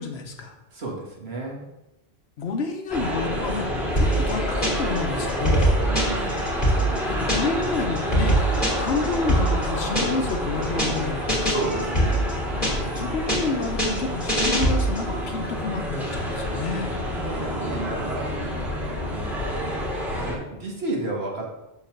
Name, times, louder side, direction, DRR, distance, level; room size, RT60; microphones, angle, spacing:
voice 1, 0.0-0.6 2.4-5.7 7.0-8.4 8.8-11.5 12.8-16.9, left 4 dB, 85° left, 4 dB, 1.1 m, -29 dB
voice 2, 0.7-1.6 5.9-6.4 11.5-12.3 17.1-18.3 19.0-19.8 20.2-21.5, right 2 dB, 75° right, -2 dB, 2.0 m, -32 dB
sound 1, 2.9-20.4, equal, ahead, 2.2 m, -28 dB
sound 2, 4.0-5.0 5.3-7.7 8.0-10.3 10.6-11.0 11.3-13.0 13.3-15.1, right 1 dB, 35° left, 2.8 m, -23 dB
7.1 x 4.2 x 6.6 m, 0.94 s
omnidirectional pair, 1.1 m